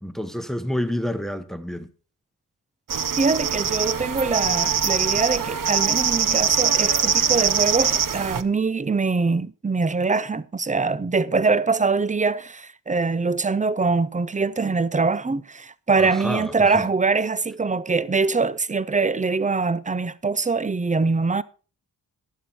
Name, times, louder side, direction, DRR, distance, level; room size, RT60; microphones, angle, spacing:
voice 1, 0.0-1.9 16.0-16.9, left 1 dB, ahead, 1.0 m, -29 dB
sound 1, 2.9-8.4, right 7 dB, 55° right, 0.8 m, -22 dB
voice 2, 3.2-21.4, right 4 dB, 20° right, 0.5 m, -23 dB
12.0 x 11.5 x 4.3 m
wide cardioid pair, 125°, 39 cm